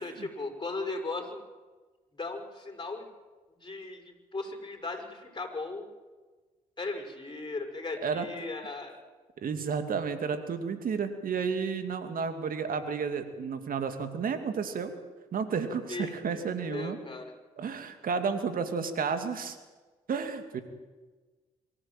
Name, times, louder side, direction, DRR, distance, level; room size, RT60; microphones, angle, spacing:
voice 1, 0.0-1.4 2.1-3.1 3.6-5.9 6.8-9.0 15.9-16.4 16.7-17.3, left 3 dB, 30° left, 4 dB, 6.1 m, -37 dB
voice 2, 9.4-14.9 15.3-17.0 17.6-19.6 20.1-20.6, right 6 dB, 65° right, 8 dB, 2.6 m, -32 dB
23.5 x 14.5 x 9.2 m, 1.3 s
hypercardioid pair, 45°, 16 cm